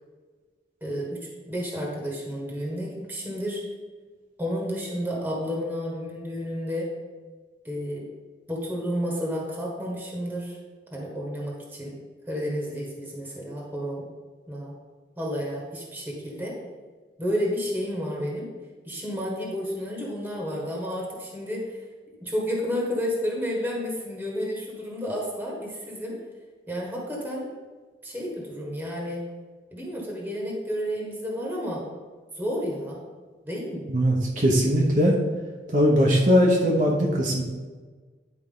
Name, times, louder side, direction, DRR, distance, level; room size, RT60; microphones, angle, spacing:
voice 1, 0.8-3.6 4.4-6.9 7.6-8.0 8.5-10.6 10.9-11.9 12.3-14.0 14.5-14.7 15.2-16.6 17.2-18.5 18.8-21.8 22.2-26.2 26.7-27.5 28.0-29.2 29.7-31.8 32.3-33.0 33.4-33.9, equal, 10° right, -3 dB, 1.5 m, -31 dB
voice 2, 33.9-35.2 35.7-37.4, equal, 45° right, -2 dB, 1.0 m, -20 dB
11.0 x 4.6 x 3.8 m, 1.4 s
head